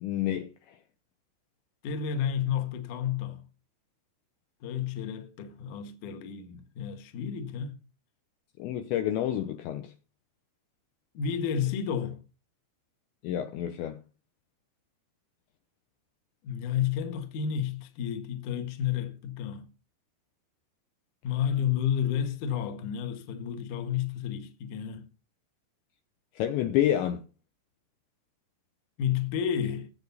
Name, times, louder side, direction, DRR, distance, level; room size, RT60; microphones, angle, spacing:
voice 1, 0.0-0.8 8.6-9.9 13.2-14.0 26.4-27.2, left 11 dB, 75° left, 2.8 m, -29 dB
voice 2, 1.8-3.4 4.6-7.8 11.1-12.2 16.4-19.6 21.2-25.1 29.0-29.9, left 8 dB, 60° left, 2.2 m, -31 dB
19.5 x 7.9 x 4.1 m
omnidirectional pair, 5.9 m